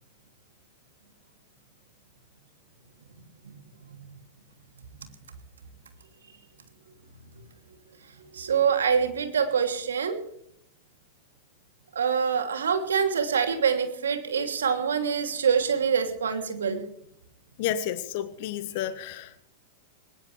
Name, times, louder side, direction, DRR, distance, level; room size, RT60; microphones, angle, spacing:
voice 1, 8.3-10.2 11.9-16.8, right 6 dB, 75° right, 3.0 m, -25 dB
voice 2, 17.6-19.4, left 10 dB, 55° left, 1.5 m, -31 dB
21.0 x 19.5 x 3.4 m
hypercardioid pair, 95°, 0 cm